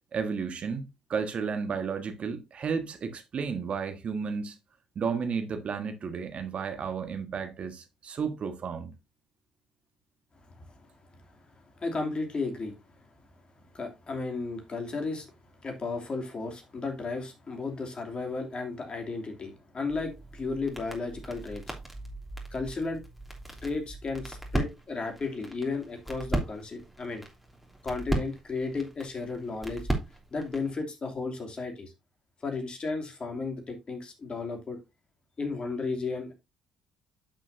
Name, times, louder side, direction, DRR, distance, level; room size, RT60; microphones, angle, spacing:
voice 1, 0.1-4.6 4.9-8.9, right 6 dB, 50° right, 1.5 m, -33 dB
voice 2, 11.8-12.8 13.7-15.3 15.6-21.8 22.5-23.0 23.6-27.2 27.8-29.9 30.3-31.9 32.4-34.8 35.4-36.3, left 3 dB, 40° left, 2.8 m, -34 dB
sound 1, 19.9-30.8, right 2 dB, ahead, 3.2 m, -37 dB
10.0 x 6.1 x 2.7 m
hypercardioid pair, 50°, 3 cm